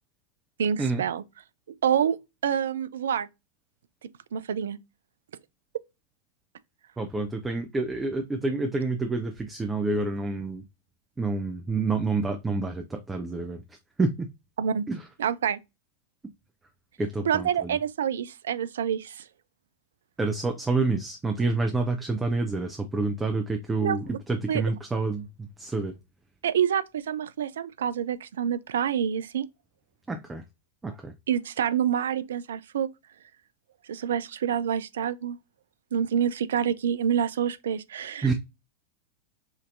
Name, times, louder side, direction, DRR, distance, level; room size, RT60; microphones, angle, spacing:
voice 1, 0.6-1.2 1.8-2.2 2.4-3.3 4.3-4.8 14.6-14.9 15.2-15.6 17.2-19.2 23.8-24.0 24.5-24.6 26.4-29.5 31.3-32.9 33.9-35.4 35.9-38.3, right 8 dB, 65° right, 0.3 m, -27 dB
voice 2, 7.0-10.6 11.2-13.6 14.0-14.1 14.9-15.0 17.0-17.8 20.2-25.9 30.1-30.4 30.8-31.1 38.2-38.3, right 3 dB, 10° right, 0.5 m, -28 dB
5.1 x 2.7 x 2.5 m
figure-of-eight pair, 90°, 0 cm